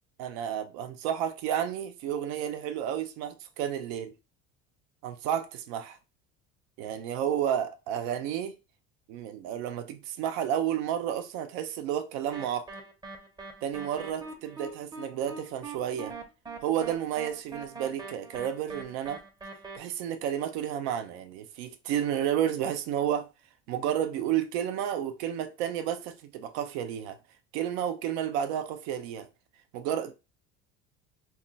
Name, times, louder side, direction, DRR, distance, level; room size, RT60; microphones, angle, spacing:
voice 1, 0.2-4.1 5.0-6.0 6.8-8.6 9.1-12.7 13.6-16.1 16.6-19.2 19.8-23.3 23.7-27.2 27.5-29.3 29.7-30.1, right 10 dB, 85° right, 0.6 m, -31 dB
sound 1, 12.3-19.8, right 4 dB, 15° right, 0.6 m, -42 dB
2.3 x 2.2 x 3.8 m
supercardioid pair, 115°, 31 cm